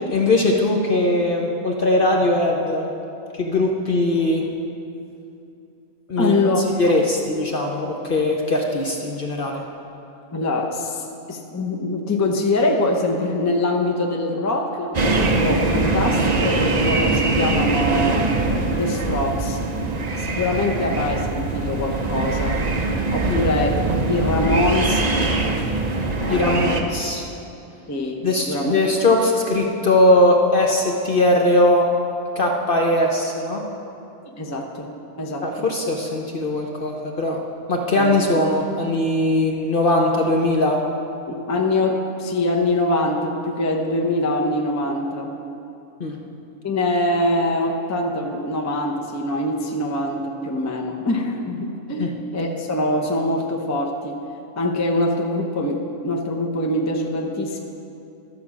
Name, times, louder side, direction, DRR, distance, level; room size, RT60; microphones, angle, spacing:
voice 1, 0.1-2.9 3.4-4.4 6.1-6.3 6.8-9.6 23.2-23.4 26.3-27.3 28.2-31.9 32.4-33.6 35.4-37.4 37.7-40.8 46.0-46.2 52.0-52.1, left 1 dB, 45° left, 0 dB, 0.9 m, -20 dB
voice 2, 6.2-6.7 10.3-18.3 18.7-19.6 20.2-22.6 23.1-25.0 26.2-26.8 27.9-28.7 34.3-34.9 35.2-35.7 38.0-38.2 41.3-45.3 46.6-54.2 54.6-57.6, left 2 dB, 15° left, 0 dB, 0.6 m, -24 dB
sound 1, 14.9-26.8, right 3 dB, 40° right, 0.7 m, -22 dB
12.5 x 5.1 x 7.2 m, 2.7 s
omnidirectional pair, 1.5 m